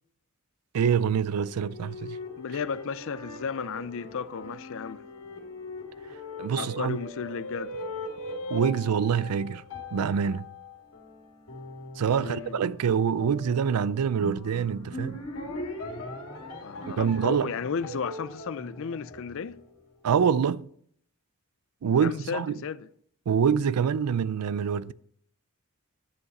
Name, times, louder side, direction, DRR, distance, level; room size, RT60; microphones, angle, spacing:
voice 1, 0.7-2.2 6.4-7.0 8.5-9.6 9.9-10.5 12.0-15.2 16.9-17.5 20.0-20.7 21.8-22.6 23.3-24.9, right 7 dB, 85° right, 0.4 m, -25 dB
sound 1, 1.3-19.8, left 2 dB, 75° left, 2.4 m, -40 dB
voice 2, 2.4-5.0 6.6-7.8 12.2-12.6 16.6-19.6 21.8-22.9, left 6 dB, 60° left, 0.5 m, -34 dB
11.0 x 8.1 x 4.1 m
head